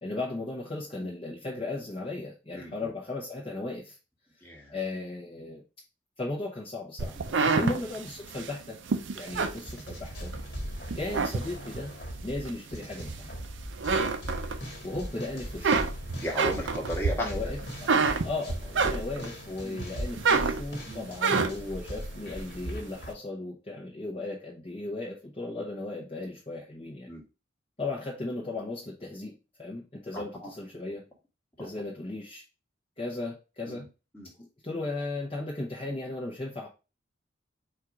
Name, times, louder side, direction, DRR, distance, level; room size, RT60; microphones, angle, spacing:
voice 1, 0.0-4.0 4.7-5.6 6.2-7.2 7.5-8.8 9.1-10.3 10.9-11.9 12.2-13.3 14.8-15.8 17.2-17.6 18.2-27.1 27.8-31.0 31.6-32.4 33.0-33.8 34.4-36.7, left 2 dB, 30° left, -4 dB, 0.9 m, -36 dB
voice 2, 4.4-4.7 7.1-7.6 10.8-10.9 16.1-17.3 19.6-19.8 20.9-21.0 27.1-27.2 30.1-30.5 30.9-31.0 31.6-31.7 33.6-33.9 34.1-34.3, equal, 10° left, -2 dB, 1.3 m, -36 dB
sound 1, 7.0-10.4 10.8-11.9 12.4-13.4 13.7-15.0 15.3-19.4 19.8-21.8, right 4 dB, 85° right, 0.5 m, -28 dB
sound 2, 9.3-23.1, equal, 60° left, 1.7 m, -39 dB
4.4 x 2.5 x 4.6 m, 0.30 s
head